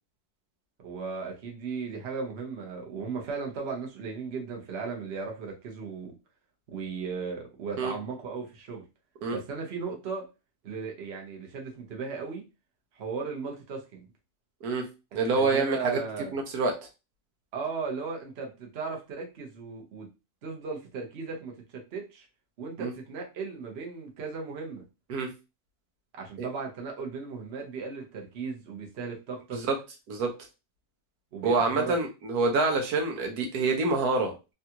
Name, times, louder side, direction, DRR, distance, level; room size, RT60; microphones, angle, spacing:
voice 1, 0.8-6.1 6.7-8.8 9.3-10.2 10.6-12.4 13.0-14.1 15.4-16.3 17.5-20.1 20.4-22.3 22.6-24.8 26.1-29.6 31.3-32.0, right 5 dB, 50° right, 1 dB, 0.9 m, -36 dB
voice 2, 15.1-16.0 16.3-16.7 22.8-22.9 25.1-25.3 26.4-26.5 29.5-29.7 30.1-30.3 31.4-34.5, right 3 dB, 75° right, 2 dB, 1.2 m, -26 dB
3.4 x 2.4 x 2.8 m, 0.28 s
omnidirectional pair, 1.7 m